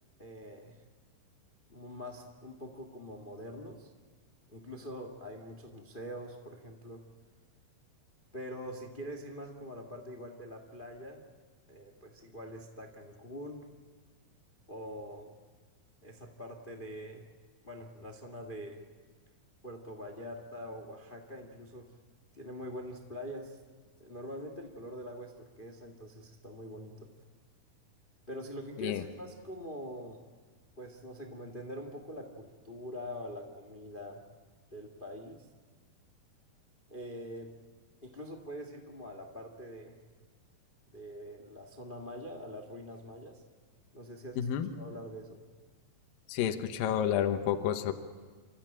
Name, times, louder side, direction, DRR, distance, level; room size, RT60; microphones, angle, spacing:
voice 1, 0.2-0.8 1.7-3.9 4.5-7.0 8.3-11.2 11.7-13.6 14.7-15.3 16.0-17.2 17.6-18.8 19.6-21.9 22.3-23.6 24.0-27.1 28.3-30.2 30.8-34.2 34.7-35.5 36.9-37.5 38.0-40.0 40.9-43.4 43.9-44.5 44.7-45.4, equal, 40° left, 5 dB, 0.7 m, -44 dB
voice 2, 44.4-44.7 46.3-47.9, left 9 dB, 75° left, 7 dB, 2.8 m, -30 dB
29.0 x 14.5 x 8.9 m, 1.4 s
omnidirectional pair, 4.3 m